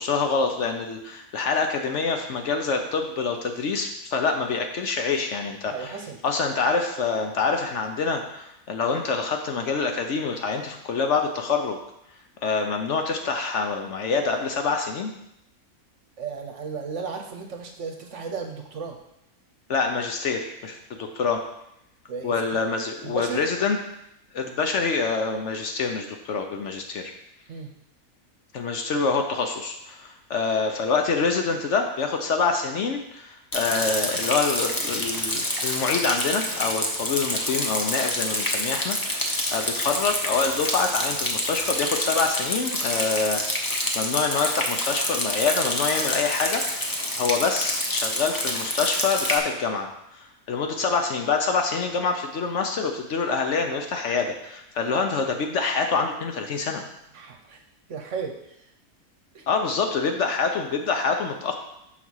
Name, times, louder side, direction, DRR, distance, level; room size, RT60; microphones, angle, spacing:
voice 1, 0.0-6.0 6.2-11.8 12.4-15.1 19.7-21.4 22.2-23.8 24.3-27.1 28.5-43.4 43.9-49.9 50.1-56.8 59.5-61.5, left 4 dB, 60° left, 4 dB, 0.9 m, -26 dB
voice 2, 5.6-6.2 16.2-19.0 22.1-22.4 23.0-23.5 27.5-27.7 57.1-57.6 57.9-58.7 59.3-59.5, right 5 dB, 60° right, 3 dB, 1.0 m, -34 dB
Rain, 33.5-49.4, left 1 dB, 20° left, 0.7 m, -27 dB
5.9 x 4.1 x 6.2 m, 0.81 s
omnidirectional pair, 1.6 m